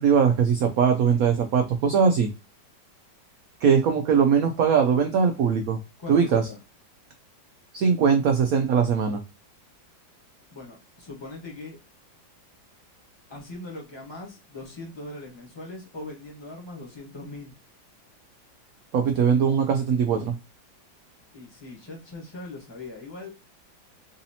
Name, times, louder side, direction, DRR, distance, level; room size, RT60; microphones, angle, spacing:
voice 1, 0.0-2.3 3.6-5.8 6.1-6.5 7.7-9.2 18.9-20.3, right 6 dB, 80° right, 0.7 m, -21 dB
voice 2, 6.0-6.6 10.5-11.8 13.3-17.6 21.3-23.3, left 2 dB, 15° left, 1.0 m, -40 dB
4.0 x 2.7 x 2.7 m
omnidirectional pair, 2.1 m